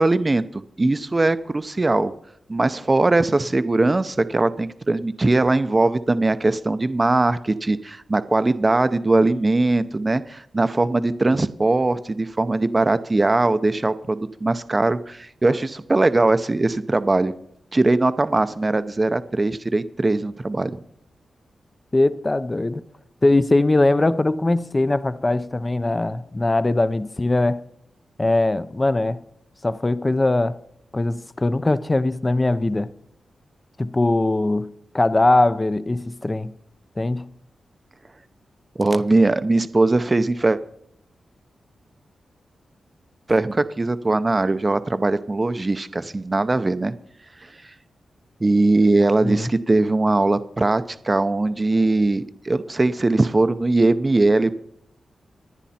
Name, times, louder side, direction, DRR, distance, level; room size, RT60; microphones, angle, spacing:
voice 1, 0.0-2.1 2.5-17.3 17.7-20.8 38.8-40.6 43.3-47.0 48.4-54.6, right 2 dB, 25° right, 0.7 m, -20 dB
voice 2, 21.9-22.8 23.2-27.6 28.2-29.2 29.6-30.6 30.9-32.9 33.8-34.7 34.9-36.5 37.0-37.3 49.2-49.5, left 2 dB, 20° left, 0.6 m, -21 dB
26.0 x 10.5 x 4.3 m
wide cardioid pair, 125°, 0 cm